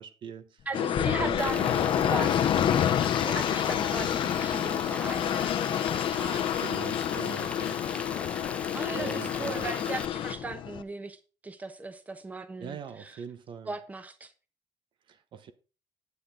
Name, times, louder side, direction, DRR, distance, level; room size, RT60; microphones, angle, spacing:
voice 1, 0.0-2.3 6.3-7.8 8.9-9.8 12.6-13.7 15.1-15.5, right 7 dB, 60° right, 1.0 m, -42 dB
sound 1, 0.7-10.4, left 10 dB, 90° left, 0.9 m, -31 dB
voice 2, 0.7-1.7 2.0-2.5 3.2-5.6 6.1-6.5 8.7-13.2 13.6-14.3, right 2 dB, 15° right, 1.0 m, -38 dB
sound 2, 1.0-10.8, left 9 dB, 65° left, 0.8 m, -31 dB
Rain, 1.4-10.1, left 3 dB, 15° left, 0.4 m, -40 dB
9.7 x 8.6 x 3.8 m
cardioid pair, 160°, 9 cm